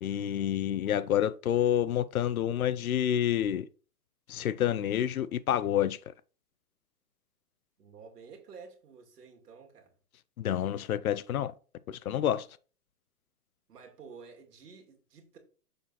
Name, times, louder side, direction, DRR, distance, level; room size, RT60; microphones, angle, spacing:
voice 1, 0.0-3.7 4.3-6.0 10.4-11.5 11.9-12.5, left 10 dB, 65° left, 0.5 m, -28 dB
voice 2, 7.8-9.9 13.7-15.4, right 5 dB, 80° right, 2.4 m, -51 dB
6.7 x 4.0 x 4.0 m
hypercardioid pair, 180°, 47 cm